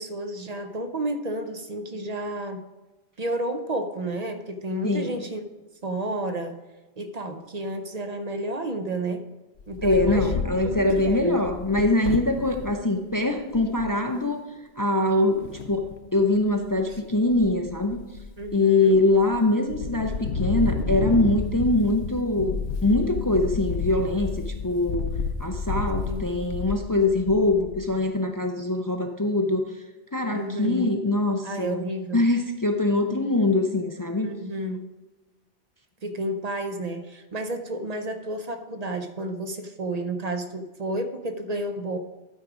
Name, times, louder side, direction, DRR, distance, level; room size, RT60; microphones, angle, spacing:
voice 1, 0.0-2.7 3.2-5.4 5.8-6.6 7.0-9.2 9.7-11.4 16.9-17.0 18.4-19.0 26.1-26.2 30.3-31.0 31.4-32.2 34.2-34.9 36.0-42.0, right 1 dB, 45° right, 7 dB, 0.6 m, -31 dB
voice 2, 4.8-5.2 9.8-14.4 14.8-18.0 18.5-25.0 25.4-29.7 30.1-31.8 32.1-34.3, left 2 dB, 25° left, 5 dB, 0.4 m, -23 dB
Wind, 9.6-12.7 13.2-13.3 13.5-13.9 15.4-16.0 16.5-17.0 17.3-18.5 18.9-19.4 19.7-27.9, left 5 dB, 70° left, 1.0 m, -31 dB
12.0 x 4.9 x 4.9 m, 1.2 s
omnidirectional pair, 1.2 m